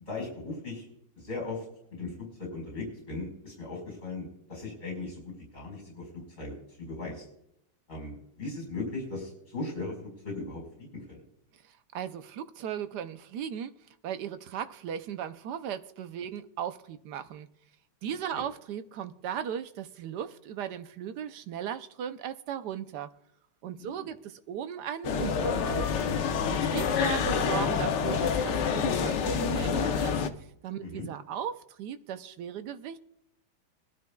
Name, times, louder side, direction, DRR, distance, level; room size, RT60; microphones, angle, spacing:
voice 1, 0.1-0.8 1.2-1.6 1.9-2.1 2.4-7.2 7.9-9.9 10.2-11.2 18.3-18.4 23.8-24.1 30.8-31.1, left 3 dB, 35° left, 5.0 m, -38 dB
voice 2, 11.9-13.7 14.0-17.5 18.0-23.1 23.6-25.8 26.5-30.2 30.6-33.0, right 9 dB, 70° right, 1.0 m, -37 dB
sound 1, 25.0-30.3, left 6 dB, 65° left, 1.3 m, -27 dB
21.5 x 12.5 x 2.3 m
omnidirectional pair, 2.2 m